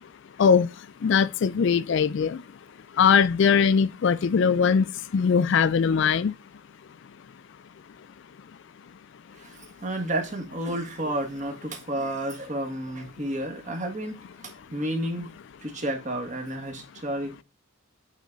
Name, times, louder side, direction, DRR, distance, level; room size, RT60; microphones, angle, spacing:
voice 1, 0.4-2.4 2.9-6.3, left 6 dB, 55° left, 0.3 m, -21 dB
voice 2, 9.3-15.3 15.6-17.4, right 1 dB, 35° right, 1.5 m, -31 dB
8.3 x 3.8 x 3.9 m
head